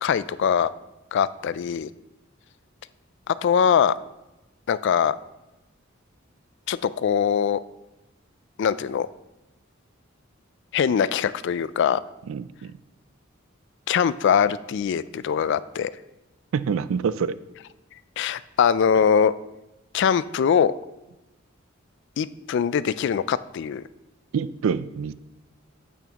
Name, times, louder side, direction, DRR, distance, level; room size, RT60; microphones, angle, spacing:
voice 1, 0.0-0.7 1.1-1.9 3.3-3.9 4.7-5.2 6.7-7.6 8.6-9.1 10.7-12.0 13.9-15.9 18.2-19.3 19.9-20.7 22.2-23.8, left 7 dB, 60° left, 16 dB, 0.3 m, -22 dB
voice 2, 12.3-12.7 16.5-17.3 24.3-25.1, right 6 dB, 80° right, 16 dB, 0.4 m, -26 dB
9.1 x 8.3 x 2.9 m, 0.98 s
head